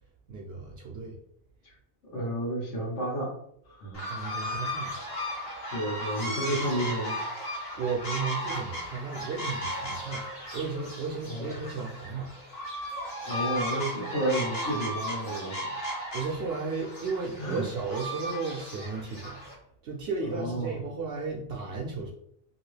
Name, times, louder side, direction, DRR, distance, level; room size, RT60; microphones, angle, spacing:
voice 1, 0.3-1.2 4.1-5.0 7.7-12.4 16.1-19.4 19.8-22.1, right 4 dB, 65° right, -2 dB, 0.7 m, -34 dB
voice 2, 2.1-3.3 3.6-4.1 5.6-7.2 11.3-11.5 13.2-15.7 17.4-17.6 20.3-20.8, right 1 dB, 80° left, -4 dB, 1.3 m, -31 dB
sound 1, 3.9-19.5, equal, 55° left, 1.3 m, -35 dB
2.8 x 2.6 x 3.2 m, 0.71 s
omnidirectional pair, 1.2 m